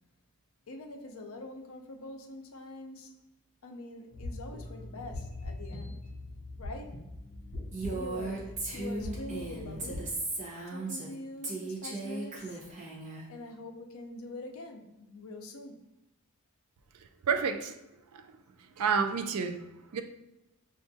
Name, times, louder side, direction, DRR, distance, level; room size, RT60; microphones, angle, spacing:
voice 1, 0.7-3.2 3.6-6.1 6.6-7.0 7.9-10.1 10.7-12.6 13.3-15.8, left 2 dB, 70° left, 3 dB, 0.5 m, -44 dB
sound 1, 4.1-10.0, left 2 dB, 30° left, 1.0 m, -42 dB
Female speech woman speaking, 7.7-11.1 11.4-13.2, right 3 dB, 35° right, 0.8 m, -37 dB
voice 2, 17.3-17.8 18.1-18.3 18.8-19.6 19.9-20.0, right 5 dB, 85° right, 8 dB, 0.4 m, -29 dB
5.9 x 2.5 x 2.6 m, 0.96 s
head